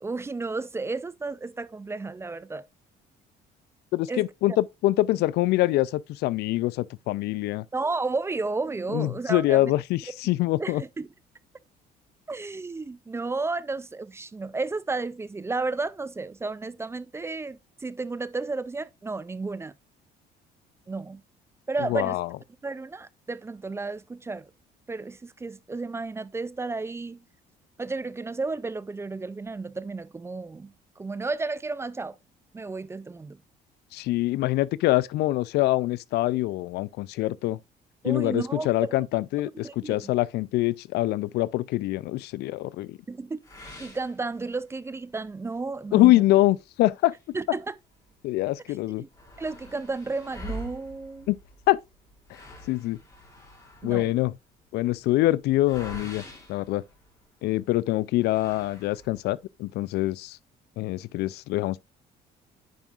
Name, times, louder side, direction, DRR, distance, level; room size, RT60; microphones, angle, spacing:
voice 1, 0.0-2.7 4.1-4.3 7.7-9.6 10.6-11.1 12.3-19.7 20.9-21.2 21.7-22.2 22.6-24.5 24.9-27.2 27.8-32.2 32.5-33.4 38.0-39.0 39.5-40.1 43.1-46.2 47.3-47.7 49.0-49.1 49.4-51.3 53.8-54.1, right 3 dB, 15° right, 0.4 m, -32 dB
voice 2, 3.9-7.6 8.9-10.8 21.9-22.3 33.9-37.6 38.0-43.0 45.9-47.1 48.2-49.0 51.3-51.4 51.7-51.8 52.7-53.0 53.8-54.3 54.7-56.2 56.5-56.8 57.4-60.4 60.8-61.8, left 17 dB, 80° left, 0.4 m, -24 dB
sound 1, 43.4-44.9 45.3-45.4 45.9-46.0 46.8-48.1 48.4-48.5 48.7-57.5 58.2-59.3, equal, 20° left, 3.0 m, -45 dB
9.4 x 5.4 x 2.4 m
cardioid pair, 110°, 17 cm